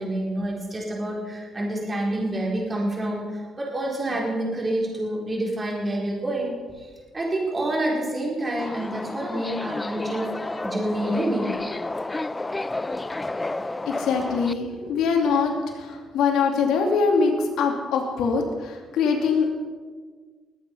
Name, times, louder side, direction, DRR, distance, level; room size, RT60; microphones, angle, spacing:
voice 1, 0.0-11.6, right 1 dB, 30° right, -2 dB, 4.8 m, -28 dB
Subway metro underground, 8.6-14.5, left 2 dB, 20° left, 0.5 m, -31 dB
voice 2, 13.9-19.5, left 5 dB, 85° left, 1 dB, 2.6 m, -23 dB
21.0 x 8.6 x 5.6 m, 1.5 s
cardioid pair, 90°, 0 cm